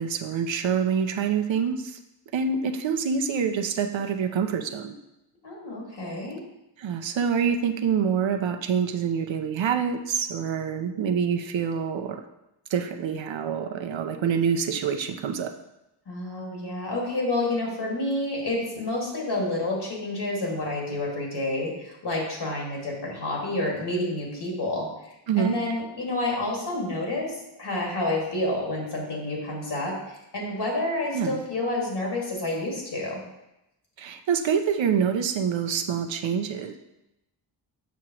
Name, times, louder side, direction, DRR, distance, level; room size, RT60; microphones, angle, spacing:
voice 1, 0.0-2.0 2.3-5.0 6.8-12.2 12.7-15.5 25.3-25.6 31.1-31.4 34.0-36.8, right 7 dB, 75° right, 6 dB, 0.7 m, -26 dB
voice 2, 5.4-6.4 16.1-24.9 25.4-33.2, left 2 dB, 60° left, -2 dB, 2.1 m, -29 dB
7.1 x 6.2 x 3.0 m, 0.91 s
wide cardioid pair, 120°, 46 cm